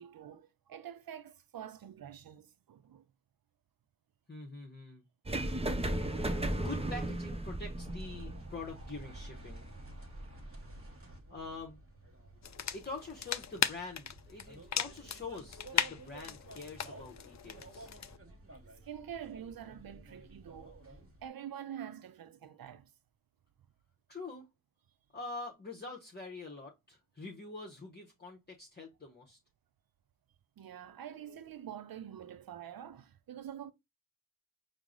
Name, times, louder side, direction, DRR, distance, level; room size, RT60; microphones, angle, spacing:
voice 1, 0.0-3.1 5.6-5.7 18.0-18.4 18.8-22.9 30.6-33.7, right 9 dB, 85° right, 0.5 m, -47 dB
voice 2, 4.3-5.0 6.1-9.7 11.3-11.8 12.7-17.9 24.1-24.5 25.1-29.4, left 3 dB, 30° left, 0.9 m, -45 dB
sound 1, 5.3-11.2, right 1 dB, 20° right, 0.5 m, -37 dB
sound 2, 7.7-21.3, right 1 dB, 40° right, 1.2 m, -53 dB
sound 3, 12.4-18.2, left 8 dB, 50° left, 0.4 m, -37 dB
4.6 x 2.0 x 3.8 m
cardioid pair, 45°, 35 cm